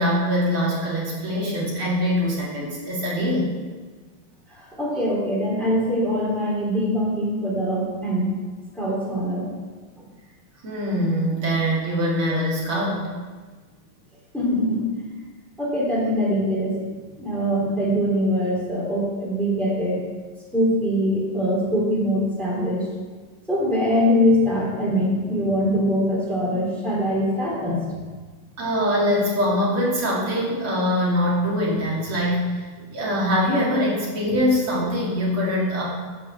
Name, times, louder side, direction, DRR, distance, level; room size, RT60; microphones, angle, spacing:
voice 1, 0.0-3.5 10.6-13.1 28.6-32.5 32.8-35.8, equal, 85° right, -6 dB, 3.6 m, -23 dB
voice 2, 4.5-8.3 8.7-9.5 14.3-14.8 15.6-16.9 17.2-20.0 20.5-22.9 23.5-27.9, equal, ahead, -5 dB, 3.2 m, -23 dB
10.5 x 6.0 x 7.5 m, 1.4 s
omnidirectional pair, 2.3 m